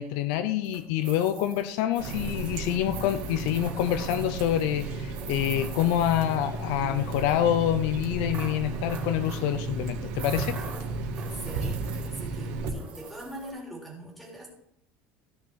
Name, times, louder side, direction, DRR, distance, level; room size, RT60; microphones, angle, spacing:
voice 1, 0.0-10.6, left 11 dB, 70° left, 11 dB, 0.7 m, -27 dB
sound 1, 0.6-6.6 6.9-7.4 8.3-9.6 10.1-12.4 12.7-13.5, right 6 dB, 25° right, 3.1 m, -44 dB
Water tap faucet, 2.0-12.7, right 3 dB, 60° right, 1.9 m, -34 dB
voice 2, 11.2-14.5, right 1 dB, 5° left, -2 dB, 3.4 m, -42 dB
14.5 x 6.3 x 4.6 m, 0.77 s
cardioid pair, 165°, 5 cm